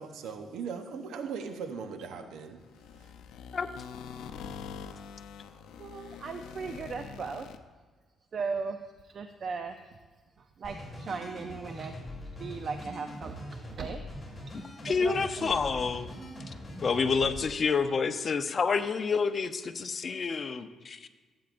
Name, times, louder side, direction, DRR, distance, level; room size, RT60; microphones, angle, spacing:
voice 1, 0.0-2.6 3.0-3.1, right 6 dB, 85° right, 0.8 m, -39 dB
sound 1, 2.6-7.6, left 7 dB, 80° left, 0.6 m, -44 dB
voice 2, 5.8-7.5 8.3-8.8 9.0-9.9 10.6-11.9 12.4-14.0 15.0-15.9 16.4-16.5, right 5 dB, 50° right, 0.5 m, -37 dB
sound 2, 10.6-17.5, left 1 dB, 15° left, 3.1 m, -43 dB
voice 3, 14.8-16.1 16.8-21.1, left 5 dB, 45° left, 0.6 m, -28 dB
15.0 x 8.7 x 2.5 m
cardioid pair, 90°, 0 cm